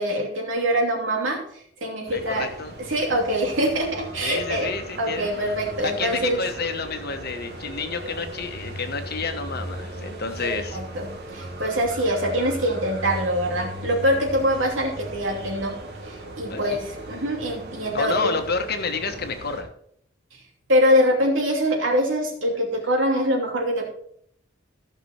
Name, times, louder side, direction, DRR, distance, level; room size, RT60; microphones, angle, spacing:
voice 1, 0.0-2.5 2.9-4.7 5.0-6.4 10.4-15.8 16.0-18.3 20.7-23.9, equal, 75° right, 1 dB, 2.6 m, -24 dB
voice 2, 2.1-2.7 4.2-5.3 5.8-10.8 16.5-16.8 17.9-19.7, left 4 dB, 55° left, 6 dB, 1.2 m, -29 dB
sound 1, 2.1-19.6, right 1 dB, 55° right, 1.9 m, -37 dB
14.5 x 6.0 x 4.4 m, 0.67 s
head